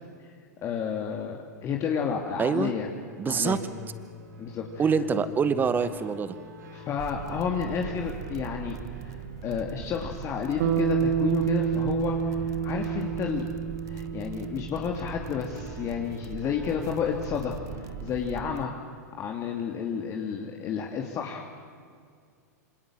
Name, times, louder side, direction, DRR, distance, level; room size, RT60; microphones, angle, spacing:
voice 1, 0.6-2.9 3.2-3.6 4.4-4.8 6.7-8.7 9.4-13.5 13.9-17.6 18.0-18.7 19.2-21.6, left 7 dB, 35° left, 1 dB, 2.6 m, -31 dB
voice 2, 2.4-2.7 3.2-3.6 4.8-6.4, right 6 dB, 20° right, 13 dB, 1.6 m, -25 dB
sound 1, 3.4-18.5, right 1 dB, 85° right, 7.7 m, -45 dB
sound 2, 7.0-18.6, right 11 dB, 35° right, 1.1 m, -42 dB
Bass guitar, 10.6-15.0, right 8 dB, 55° right, 2.2 m, -28 dB
27.0 x 26.5 x 7.6 m, 2.1 s
figure-of-eight pair, 100°, 9 cm